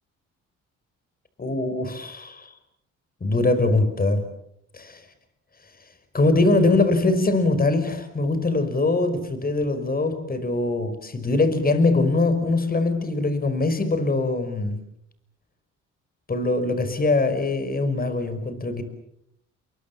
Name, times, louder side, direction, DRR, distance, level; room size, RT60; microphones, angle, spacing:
voice 1, 1.4-2.5 3.2-4.3 6.1-14.8 16.3-18.8, left 2 dB, 30° left, 10 dB, 5.4 m, -22 dB
30.0 x 22.5 x 7.3 m, 0.75 s
cardioid pair, 90°, 30 cm